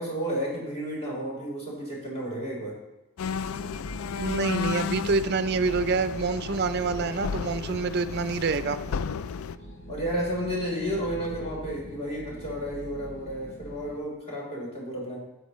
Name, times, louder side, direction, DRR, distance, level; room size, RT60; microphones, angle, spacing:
voice 1, 0.0-2.7 9.9-15.2, equal, 30° left, -4 dB, 3.9 m, -32 dB
Trainstation stopping train, 3.2-9.6, left 6 dB, 70° left, 0.4 m, -33 dB
sound 1, 3.4-14.0, left 1 dB, 50° left, 0.9 m, -43 dB
voice 2, 4.2-8.8, right 4 dB, 50° right, 11 dB, 0.5 m, -27 dB
13.0 x 9.2 x 3.1 m, 0.99 s
head